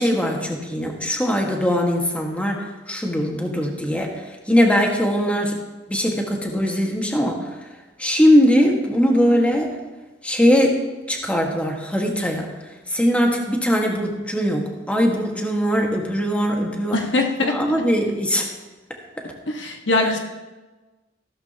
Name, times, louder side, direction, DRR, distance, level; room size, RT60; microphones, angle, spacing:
voice 1, 0.0-4.1 4.5-5.6 5.9-7.4 8.0-9.7 10.2-10.7 11.1-12.5 12.9-16.9 17.5-18.5, equal, 5° left, 0 dB, 1.7 m, -20 dB
voice 2, 16.9-17.5 19.4-20.2, left 2 dB, 70° left, 2 dB, 1.5 m, -21 dB
15.5 x 13.0 x 3.0 m, 1.2 s
head